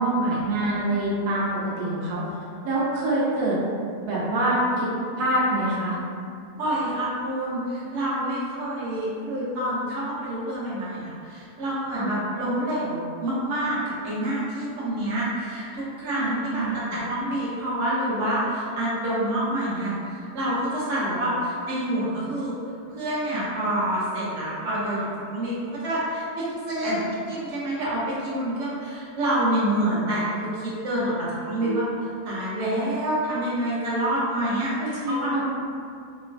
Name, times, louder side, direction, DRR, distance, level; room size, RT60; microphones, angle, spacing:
voice 1, 0.0-1.5 1.8-2.3 2.6-3.6 4.0-4.9 5.2-6.0 11.9-12.1 16.1-16.8 26.9-27.0 31.6-31.8 35.0-35.4, right 1 dB, 85° right, -7 dB, 1.1 m, -25 dB
voice 2, 6.6-22.5 22.9-31.8 32.2-35.3, right 1 dB, 60° right, -8 dB, 1.0 m, -27 dB
3.0 x 2.1 x 2.5 m, 2.4 s
omnidirectional pair, 1.6 m